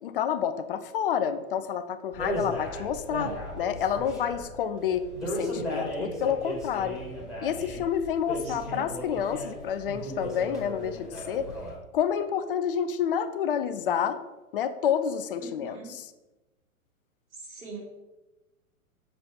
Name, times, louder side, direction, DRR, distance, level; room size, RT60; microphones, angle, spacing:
voice 1, 0.0-7.0 7.4-11.5 11.9-14.2 14.5-16.1, left 8 dB, 40° left, 11 dB, 0.6 m, -29 dB
sound 1, 2.1-11.8, equal, ahead, 2.6 m, -36 dB
voice 2, 2.9-3.4 8.4-8.8 15.4-15.9 17.4-17.8, right 4 dB, 75° right, -3 dB, 3.1 m, -43 dB
7.5 x 6.7 x 4.3 m, 1.1 s
figure-of-eight pair, 110°, 43 cm